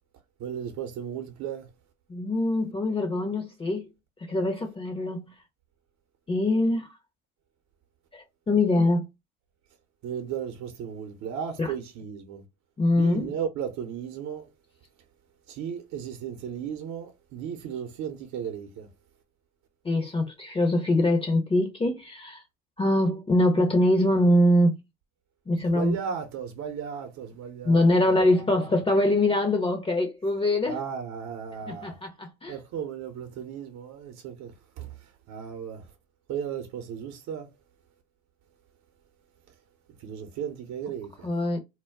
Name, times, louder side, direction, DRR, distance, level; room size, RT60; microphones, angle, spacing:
voice 1, 0.4-1.7 10.0-12.4 12.9-14.5 15.5-18.9 25.6-28.1 28.5-28.7 30.7-32.0 32.5-35.9 36.3-37.5 39.5-39.6 40.0-41.3, right 8 dB, 50° right, 0.8 m, -35 dB
voice 2, 2.1-3.9 4.2-5.3 6.3-6.9 8.1-9.1 11.6-11.7 12.8-13.3 19.8-22.4 22.8-24.8 25.5-26.0 27.6-30.8 31.7-32.5 41.2-41.6, left 1 dB, 15° left, 0.6 m, -23 dB
2.3 x 2.1 x 3.3 m
hypercardioid pair, 70°, 35 cm